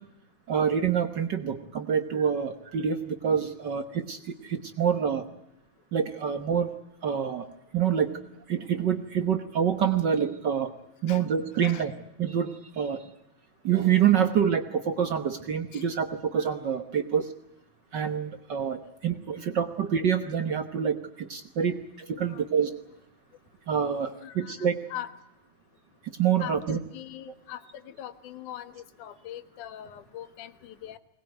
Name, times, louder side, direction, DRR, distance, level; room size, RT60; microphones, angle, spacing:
voice 1, 0.5-5.2 5.9-6.7 7.0-7.5 7.7-8.1 8.5-10.7 11.0-11.9 12.2-13.0 13.6-17.3 17.9-22.7 23.7-24.8 26.1-26.8, right 8 dB, 60° right, 8 dB, 1.1 m, -26 dB
voice 2, 24.2-25.1 26.4-27.6 27.9-31.0, left 11 dB, 85° left, 11 dB, 2.8 m, -41 dB
22.0 x 19.5 x 9.2 m, 0.86 s
omnidirectional pair, 3.4 m